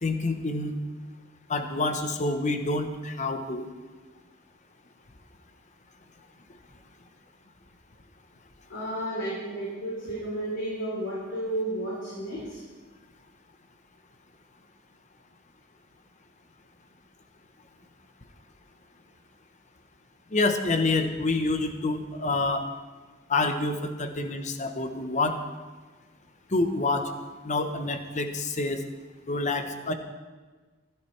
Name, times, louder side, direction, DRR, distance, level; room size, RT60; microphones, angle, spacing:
voice 1, 0.0-0.7 1.5-3.7 20.3-22.6 23.3-25.4 26.5-27.1 27.4-28.8 29.3-29.9, left 2 dB, 40° left, 7 dB, 0.9 m, -27 dB
voice 2, 8.7-12.6, right 1 dB, 70° left, -7 dB, 3.5 m, -32 dB
15.5 x 12.0 x 3.3 m, 1.3 s
head